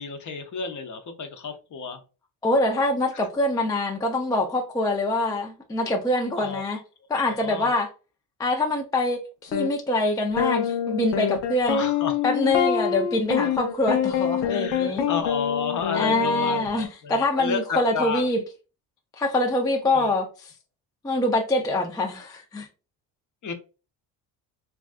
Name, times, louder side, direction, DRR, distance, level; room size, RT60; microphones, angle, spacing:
voice 1, 0.0-2.0 6.4-6.6 7.2-7.8 11.6-12.2 14.5-18.3 19.8-20.1 23.4-23.5, left 5 dB, 40° left, 0.7 m, -31 dB
voice 2, 2.4-6.8 7.1-7.9 8.4-11.8 12.2-15.1 15.9-18.4 19.2-20.5 21.0-22.7, left 2 dB, 10° left, 0.3 m, -24 dB
sound 1, 9.5-9.7 10.4-16.7, left 8 dB, 85° left, 0.6 m, -26 dB
3.3 x 2.3 x 2.5 m
cardioid pair, 100°, 45 cm